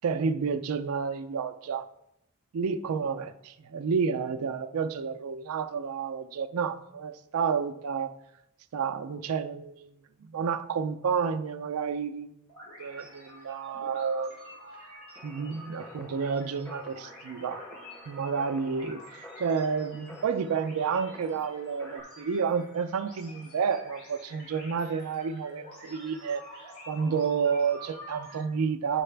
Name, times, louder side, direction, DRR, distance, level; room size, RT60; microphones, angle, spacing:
voice 1, 0.0-1.9 2.5-8.1 8.7-9.9 10.2-12.3 12.8-14.3 15.2-17.6 18.1-26.4 26.9-29.0, right 6 dB, 70° right, 8 dB, 0.4 m, -30 dB
sound 1, 12.5-28.4, equal, 70° left, 2.7 m, -48 dB
sound 2, 15.2-22.0, left 1 dB, 10° left, 0.7 m, -49 dB
10.0 x 4.7 x 3.3 m, 0.82 s
head